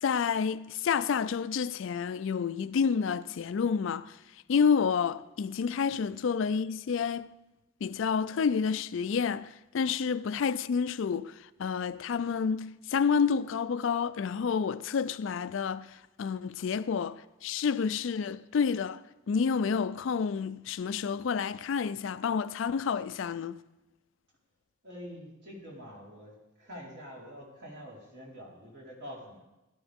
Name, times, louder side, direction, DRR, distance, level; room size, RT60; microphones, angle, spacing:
voice 1, 0.0-4.2 4.5-7.3 7.8-19.0 19.3-23.6, left 6 dB, 65° left, 0.4 m, -29 dB
voice 2, 24.8-29.4, equal, 55° right, 4.2 m, -46 dB
16.5 x 12.5 x 3.6 m
head